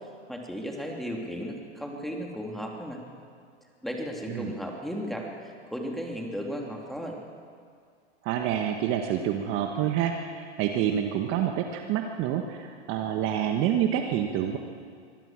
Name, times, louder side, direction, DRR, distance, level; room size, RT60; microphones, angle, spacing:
voice 1, 0.3-3.0 3.8-7.2, equal, ahead, 0 dB, 3.0 m, -35 dB
voice 2, 8.2-14.6, right 10 dB, 35° right, 4 dB, 1.5 m, -27 dB
24.5 x 17.0 x 7.5 m, 2.2 s
hypercardioid pair, 120°, 35 cm